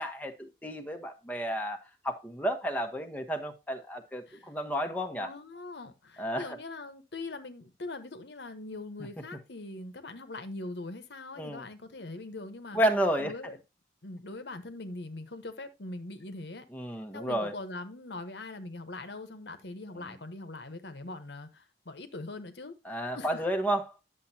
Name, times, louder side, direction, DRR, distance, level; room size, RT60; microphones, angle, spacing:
voice 1, 0.0-5.3 6.2-6.6 11.4-11.6 12.7-13.5 16.7-17.5 19.9-20.2 22.8-23.8, right 1 dB, 10° left, 1.1 m, -31 dB
voice 2, 5.1-12.8 13.2-13.6 14.0-16.6 17.1-22.7 23.1-23.5, left 2 dB, 75° left, 1.2 m, -42 dB
10.0 x 7.2 x 2.8 m
head